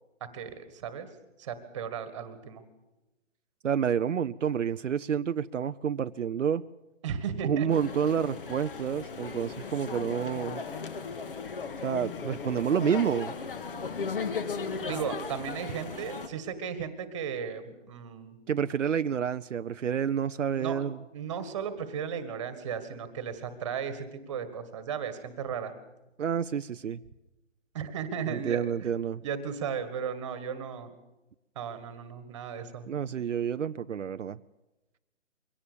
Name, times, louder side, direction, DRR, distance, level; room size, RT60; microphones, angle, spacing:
voice 1, 0.3-1.1 1.4-2.6 7.0-7.7 14.9-18.4 20.5-20.8 21.1-25.7 27.7-28.9 29.2-30.9 31.6-32.8, right 7 dB, 25° right, 11 dB, 1.7 m, -35 dB
voice 2, 3.6-6.6 7.4-10.6 11.8-13.3 18.5-21.0 26.2-27.0 28.3-29.2 32.9-34.4, right 8 dB, 75° right, 11 dB, 0.7 m, -29 dB
sound 1, 7.7-16.3, left 5 dB, 45° left, 1.9 m, -36 dB
23.5 x 17.5 x 6.9 m, 1.0 s
hypercardioid pair, 165°, 37 cm